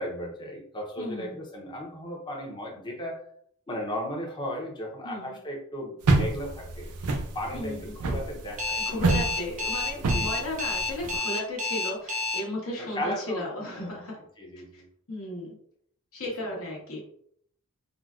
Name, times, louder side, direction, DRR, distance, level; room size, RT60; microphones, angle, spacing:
voice 1, 0.0-3.2 3.7-6.9 7.3-9.3 9.6-10.3 12.8-13.9 14.4-14.9, equal, 20° left, 0 dB, 0.6 m, -36 dB
voice 2, 1.0-1.4 5.0-5.4 7.5-7.9 8.9-14.2 14.7-14.8 15.1-15.6 16.1-17.0, left 1 dB, 70° left, -3 dB, 1.0 m, -35 dB
sound 1, 6.0-11.1, right 3 dB, 90° right, 0.5 m, -27 dB
Alarm, 8.6-12.4, left 3 dB, 35° right, 0.6 m, -29 dB
3.8 x 2.1 x 2.4 m, 0.65 s
head